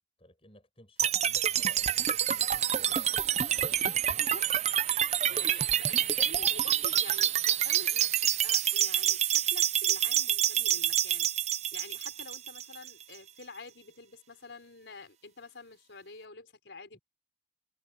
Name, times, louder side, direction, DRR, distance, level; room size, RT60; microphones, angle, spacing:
voice 1, 0.2-3.9 5.2-6.2, left 1 dB, 30° left, 7.7 m, -57 dB
sound 1, 1.0-13.0, right 10 dB, 35° right, 0.5 m, -27 dB
voice 2, 4.1-4.5 5.3-17.0, left 3 dB, 90° left, 4.8 m, -48 dB
head